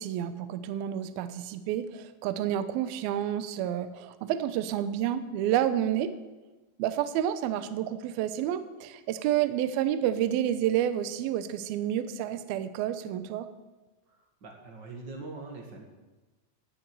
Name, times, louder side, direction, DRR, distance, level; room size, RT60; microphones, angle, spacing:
voice 1, 0.0-6.1 6.8-13.5, right 11 dB, 90° right, 11 dB, 2.1 m, -29 dB
voice 2, 14.1-15.8, right 3 dB, 60° right, 1 dB, 1.1 m, -43 dB
17.0 x 7.8 x 9.1 m, 1.2 s
omnidirectional pair, 5.5 m